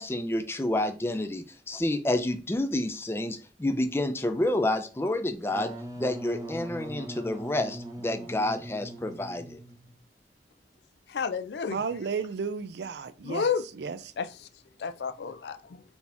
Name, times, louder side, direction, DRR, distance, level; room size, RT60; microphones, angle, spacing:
voice 1, 0.0-5.7 6.0-9.6, left 1 dB, 15° left, 0.4 m, -29 dB
Wind instrument woodwind instrument, 5.4-10.0, right 1 dB, 20° right, 0.8 m, -40 dB
voice 2, 11.1-11.8 13.2-13.6 14.2-14.5 14.8-15.8, left 6 dB, 75° left, 0.4 m, -31 dB
voice 3, 11.7-13.5 13.8-14.0, right 5 dB, 75° right, 0.4 m, -33 dB
4.2 x 2.8 x 3.4 m
head